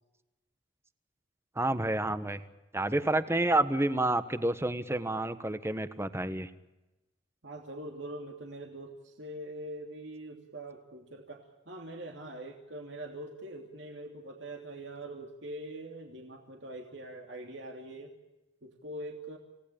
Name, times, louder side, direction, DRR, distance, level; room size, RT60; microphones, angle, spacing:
voice 1, 1.6-2.4 2.7-6.5, right 2 dB, 15° right, 12 dB, 1.3 m, -29 dB
voice 2, 7.4-18.1 18.6-19.4, right 1 dB, 70° right, 2 dB, 2.9 m, -43 dB
28.0 x 18.0 x 8.6 m, 1.0 s
head